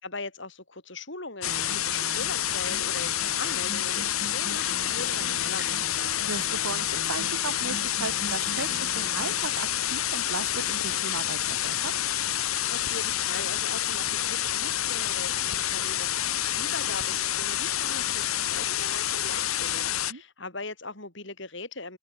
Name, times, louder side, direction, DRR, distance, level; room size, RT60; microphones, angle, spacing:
voice 1, 0.0-6.2 12.6-16.1 16.5-22.0, left 3 dB, 60° left, 4.7 m, -40 dB
sound 1, 1.4-20.1, left 12 dB, 85° left, 1.9 m, -28 dB
Acoustic guitar, 1.5-9.5, right 1 dB, 55° right, 5.0 m, -42 dB
voice 2, 6.3-11.9 20.1-20.2, right 5 dB, 80° right, 0.9 m, -36 dB
open air
head